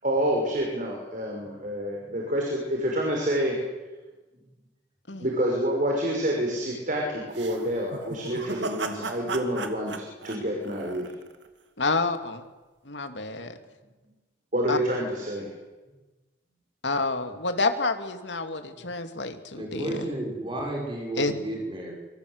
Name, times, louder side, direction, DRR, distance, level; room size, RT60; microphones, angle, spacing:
voice 1, 0.0-3.6 5.2-11.1 14.5-15.5, equal, 45° right, 0 dB, 5.8 m, -28 dB
sound 1, 7.3-11.5, right 3 dB, 85° right, 2.4 m, -36 dB
voice 2, 11.8-12.4 12.9-13.5 14.7-14.8 16.8-19.9 21.2-21.3, left 3 dB, 85° left, 7 dB, 2.8 m, -28 dB
voice 3, 19.5-21.9, right 1 dB, 30° right, 0 dB, 6.2 m, -33 dB
25.5 x 25.0 x 8.2 m, 1.2 s
head